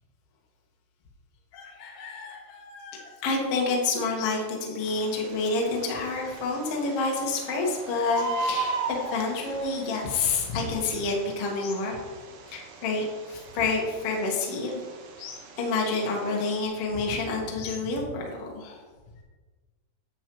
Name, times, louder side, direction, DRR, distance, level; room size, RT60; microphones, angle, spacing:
voice 1, 1.5-12.0 12.5-14.8 15.2-18.8, left 3 dB, 80° left, -2 dB, 1.3 m, -29 dB
Bird, 4.8-16.6, right 4 dB, 70° right, 2.9 m, -38 dB
9.8 x 8.1 x 3.2 m, 1.3 s
omnidirectional pair, 5.5 m